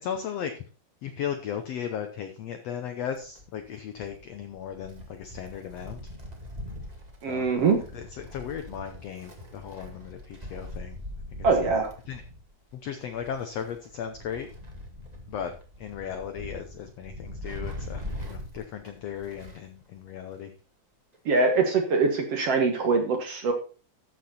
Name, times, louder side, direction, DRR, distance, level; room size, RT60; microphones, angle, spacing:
voice 1, 0.0-0.6 1.0-6.0 7.2-7.5 7.9-11.0 11.3-11.8 12.1-12.2 12.7-14.5 15.3-20.5, left 8 dB, 80° left, 7 dB, 1.4 m, -36 dB
Wind, 3.1-19.7 20.0-20.1 21.1-21.2, left 1 dB, 25° right, 0.9 m, -42 dB
voice 2, 7.2-7.8 11.4-11.9 21.3-23.5, right 4 dB, 55° right, 4 dB, 1.9 m, -23 dB
13.5 x 6.2 x 4.2 m, 0.36 s
omnidirectional pair, 4.1 m